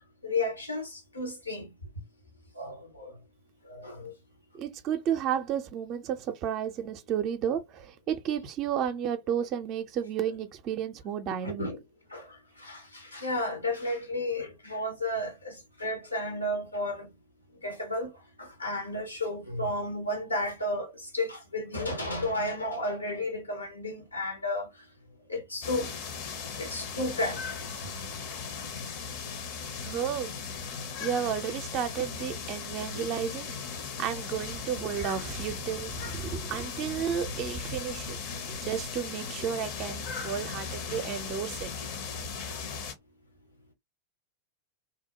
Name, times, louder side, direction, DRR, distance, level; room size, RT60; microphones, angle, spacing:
voice 1, 0.2-1.7 2.6-3.1 3.7-4.1 11.4-11.8 12.1-12.2 12.6-17.1 17.6-18.1 18.4-24.7 25.3-25.9 26.6-27.4 32.9-33.0, left 1 dB, 85° left, 1.0 m, -32 dB
voice 2, 4.5-11.7 29.8-30.4 31.0-33.6 34.0-38.2 38.5-41.7, right 8 dB, 35° right, 0.5 m, -32 dB
sound 1, 25.6-42.9, left 5 dB, 50° left, 0.7 m, -38 dB
2.6 x 2.1 x 2.8 m
figure-of-eight pair, 90°, 0 cm